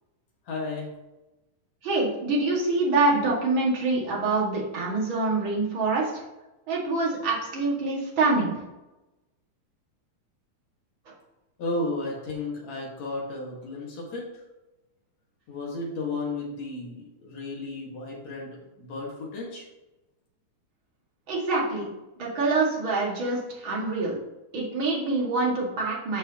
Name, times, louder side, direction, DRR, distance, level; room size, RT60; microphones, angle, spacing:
voice 1, 0.5-0.9 11.6-14.3 15.5-18.5 18.8-19.7, left 2 dB, 65° left, -3 dB, 2.8 m, -33 dB
voice 2, 1.8-6.1 6.7-8.5 21.3-21.9 22.2-24.1 24.5-26.2, right 3 dB, 45° right, -4 dB, 2.4 m, -25 dB
13.5 x 4.7 x 2.9 m, 1.0 s
omnidirectional pair, 3.4 m